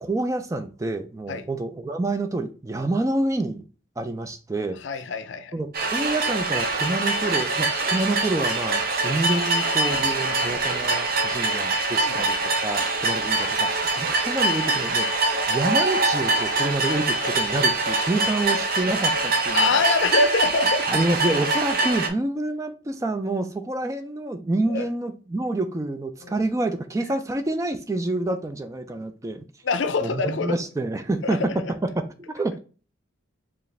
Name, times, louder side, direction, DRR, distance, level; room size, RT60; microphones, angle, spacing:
voice 1, 0.0-3.6 4.0-4.8 5.5-12.4 12.6-15.1 15.5-19.8 20.9-29.4 30.0-32.6, right 2 dB, 15° right, 0.3 m, -27 dB
voice 2, 4.8-5.5 10.3-10.5 12.0-12.3 19.5-20.9 24.7-24.8 26.2-26.3 29.6-30.6 31.2-31.5, left 3 dB, 65° left, 0.5 m, -25 dB
sound 1, 5.7-22.1, right 2 dB, 45° right, 0.6 m, -24 dB
4.9 x 2.4 x 3.2 m
head